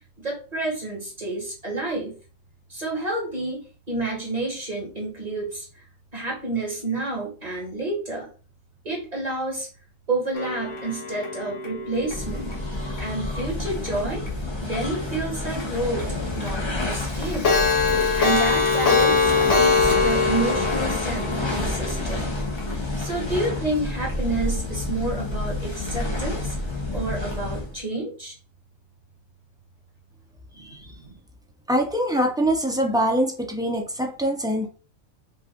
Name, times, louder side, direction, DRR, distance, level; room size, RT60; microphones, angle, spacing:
voice 1, 0.2-2.1 2.7-5.8 6.1-8.3 8.8-9.7 10.1-12.5 13.0-14.2 14.6-17.5 18.2-22.3 23.0-26.5 26.9-28.4 30.6-31.2, right 2 dB, 30° right, -3 dB, 1.9 m, -29 dB
Clock, 10.3-13.4 13.8-13.9 14.3-14.4 14.7-14.8 15.1-15.2 15.6-15.7 16.0-16.1 16.4-16.5 16.8-22.7, left 4 dB, 65° left, 1.6 m, -23 dB
sound 1, 12.0-27.8, left 2 dB, 25° left, 0.9 m, -29 dB
voice 2, 30.6-30.9 31.7-34.7, equal, 5° right, 2 dB, 0.5 m, -24 dB
5.3 x 2.5 x 3.7 m, 0.37 s
omnidirectional pair, 1.3 m